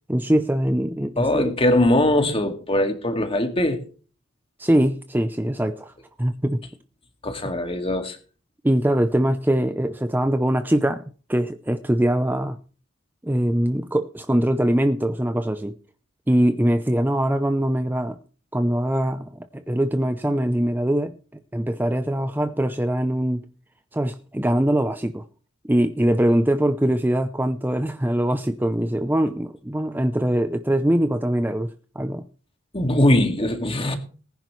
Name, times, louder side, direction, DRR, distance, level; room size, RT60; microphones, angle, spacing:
voice 1, 0.1-1.5 4.6-5.9 6.2-6.6 8.6-11.0 11.3-12.6 13.2-15.7 16.3-18.2 18.5-21.2 21.5-23.4 23.9-25.2 25.6-32.2, right 1 dB, 10° right, 0.6 m, -22 dB
voice 2, 1.2-3.8 7.2-8.2 32.7-34.0, left 1 dB, 25° left, 2.2 m, -21 dB
19.5 x 10.5 x 3.2 m
head